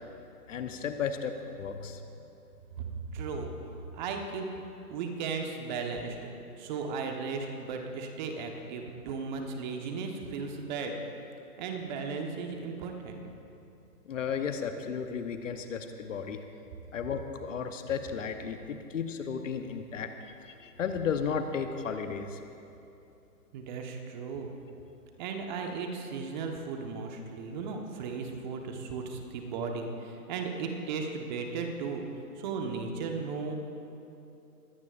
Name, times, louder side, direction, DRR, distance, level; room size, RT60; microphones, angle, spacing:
voice 1, 0.5-2.0 14.1-16.4 16.9-22.4, left 6 dB, 50° left, 7 dB, 1.1 m, -34 dB
voice 2, 3.1-3.5 3.9-4.5 4.9-6.3 6.6-11.0 11.6-13.2 23.5-24.5 25.2-32.0 32.3-33.5, right 5 dB, 30° right, 3 dB, 1.3 m, -36 dB
21.5 x 17.0 x 2.6 m, 2.8 s
hypercardioid pair, 140°, 47 cm